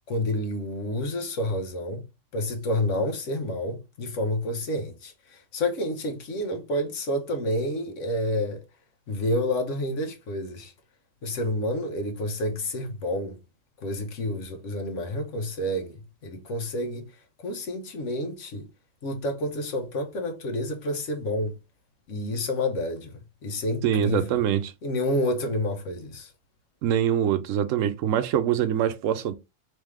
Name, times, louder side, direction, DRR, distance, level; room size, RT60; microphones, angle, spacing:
voice 1, 0.1-2.0 2.3-8.6 9.1-10.7 11.2-13.4 13.8-17.1 17.4-18.7 19.0-21.5 22.1-23.1 23.4-24.4 24.8-26.3, left 1 dB, 75° left, 1.2 m, -29 dB
voice 2, 23.8-24.7 26.8-29.3, right 10 dB, 85° right, 0.9 m, -24 dB
3.5 x 3.3 x 3.1 m
omnidirectional pair, 1.3 m